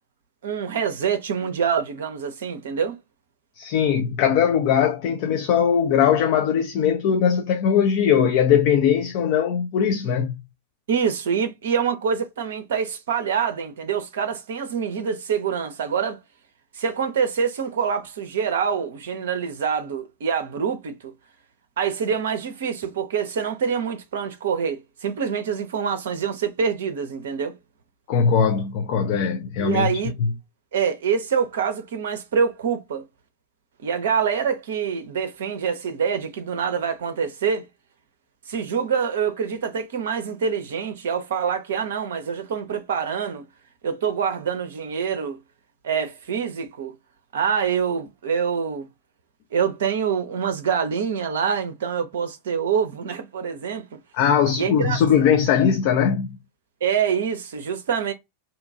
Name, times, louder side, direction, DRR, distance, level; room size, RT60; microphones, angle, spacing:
voice 1, 0.4-2.9 10.9-16.2 16.7-21.1 21.8-27.5 29.6-30.1 30.7-33.1 33.8-37.6 38.5-43.4 43.8-45.4 45.8-46.9 47.3-48.9 49.5-53.9 54.6-55.0 56.8-58.1, right 7 dB, 60° right, 0.5 m, -25 dB
voice 2, 3.6-10.4 28.1-29.9 54.1-56.4, left 8 dB, 45° left, 0.4 m, -20 dB
2.8 x 2.2 x 2.5 m
figure-of-eight pair, 90°, 0 cm